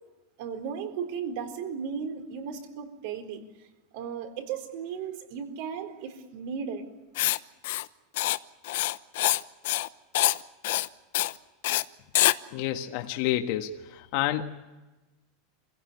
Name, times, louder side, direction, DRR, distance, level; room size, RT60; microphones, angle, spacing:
voice 1, 0.4-3.4 3.9-6.8, right 6 dB, 60° right, 7 dB, 4.2 m, -35 dB
Writing, 7.2-7.4 7.6-7.9 8.2-8.4 8.6-9.4 9.7-9.9 10.1-10.4 10.6-10.9 11.1-11.3 11.6-11.8 12.2-12.4, left 16 dB, 70° left, 0.8 m, -25 dB
voice 2, 12.5-14.4, left 13 dB, 55° left, 5 dB, 1.5 m, -29 dB
27.5 x 16.5 x 9.7 m, 1.1 s
supercardioid pair, 160°, 0 cm